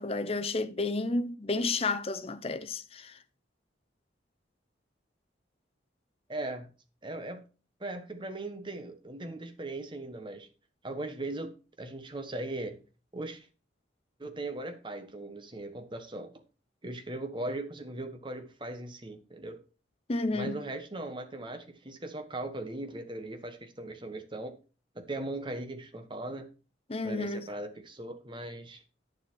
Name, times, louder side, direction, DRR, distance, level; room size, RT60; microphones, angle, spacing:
voice 1, 0.0-3.2 20.1-20.6 26.9-27.5, left 3 dB, 30° left, 0.6 m, -31 dB
voice 2, 6.3-6.7 7.0-7.4 7.8-10.5 10.8-11.5 11.8-12.8 13.1-13.5 14.2-16.3 16.8-19.6 20.3-24.6 24.9-26.5 27.0-28.8, right 2 dB, 25° right, 1.3 m, -39 dB
9.4 x 7.1 x 4.6 m
head